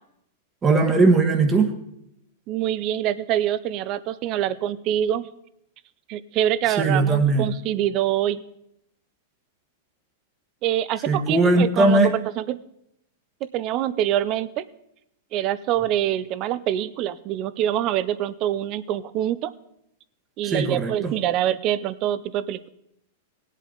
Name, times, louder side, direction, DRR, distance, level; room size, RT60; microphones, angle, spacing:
voice 1, 0.6-1.7 6.8-7.5 11.1-12.2 20.4-21.1, right 3 dB, 20° right, 5 dB, 1.4 m, -19 dB
voice 2, 2.5-5.3 6.1-8.4 10.6-12.6 13.5-14.6 15.3-19.5 20.4-22.7, right 11 dB, 40° right, 17 dB, 0.5 m, -25 dB
17.5 x 8.3 x 3.9 m, 0.78 s
supercardioid pair, 140°, 0 cm